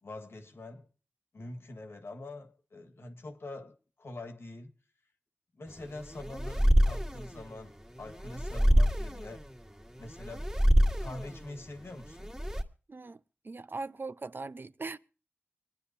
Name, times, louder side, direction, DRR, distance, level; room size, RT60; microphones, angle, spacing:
voice 1, 0.0-0.9 1.3-4.7 5.5-9.4 10.0-10.5 11.0-12.3, left 2 dB, 85° left, 1.7 m, -44 dB
sound 1, 5.7-12.6, equal, 15° right, 1.9 m, -27 dB
voice 2, 12.9-15.0, right 3 dB, 55° right, 0.6 m, -40 dB
25.5 x 10.0 x 2.7 m
wide cardioid pair, 55°, 4 cm